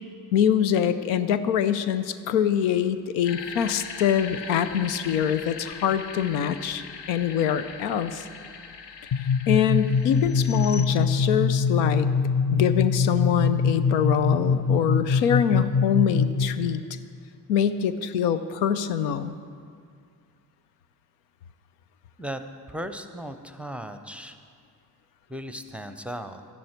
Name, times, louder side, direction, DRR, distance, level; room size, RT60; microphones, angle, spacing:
voice 1, 0.3-8.3 9.5-12.1 12.5-16.8 17.5-19.4, left 8 dB, 85° left, 12 dB, 0.6 m, -24 dB
sound 1, 3.2-10.8, left 5 dB, 60° left, 1.0 m, -40 dB
sound 2, 9.1-16.7, left 5 dB, 35° left, 0.6 m, -23 dB
voice 2, 22.7-24.4 25.3-26.4, equal, 5° right, 8 dB, 0.7 m, -36 dB
12.5 x 10.5 x 4.5 m, 2.2 s
hypercardioid pair, 50°, 46 cm